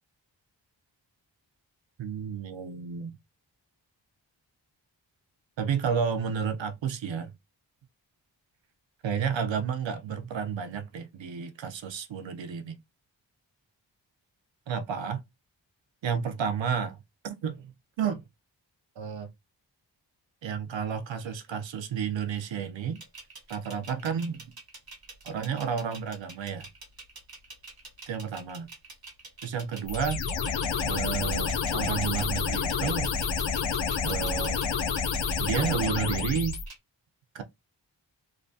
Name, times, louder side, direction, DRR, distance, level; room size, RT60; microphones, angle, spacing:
voice 1, 2.0-3.2 5.6-7.3 9.0-12.8 14.7-15.2 16.0-17.0 17.2-18.2 19.0-19.3 20.4-23.0 23.5-24.4 25.2-26.7 28.1-28.7 29.4-30.2 30.8-33.1 34.0-34.6 35.4-36.6 37.3-37.4, right 7 dB, 85° right, 0.6 m, -31 dB
sound 1, 23.0-36.8, right 3 dB, 55° right, 1.0 m, -46 dB
sound 2, 29.9-36.7, left 5 dB, 90° left, 0.5 m, -29 dB
2.6 x 2.2 x 2.6 m
cardioid pair, 50°, 44 cm